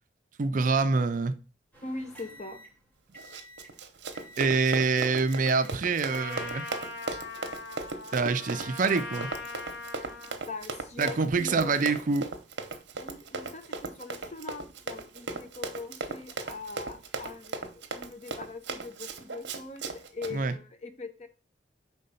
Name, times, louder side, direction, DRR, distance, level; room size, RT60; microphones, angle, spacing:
voice 1, 0.4-1.3 4.4-6.6 8.1-9.3 11.0-12.3 20.3-20.5, right 4 dB, 45° right, 0.4 m, -26 dB
sound 1, 1.7-3.8 4.1-4.8 5.1-5.8 6.1-6.8 7.6-7.8, left 1 dB, 10° left, 0.9 m, -50 dB
voice 2, 1.8-2.6 10.5-11.9 13.0-21.3, left 3 dB, 40° left, 0.8 m, -41 dB
Run, 3.2-20.3, right 3 dB, 70° right, 0.9 m, -38 dB
Trumpet, 6.1-10.4, left 3 dB, 65° left, 0.9 m, -40 dB
5.4 x 3.8 x 5.4 m
head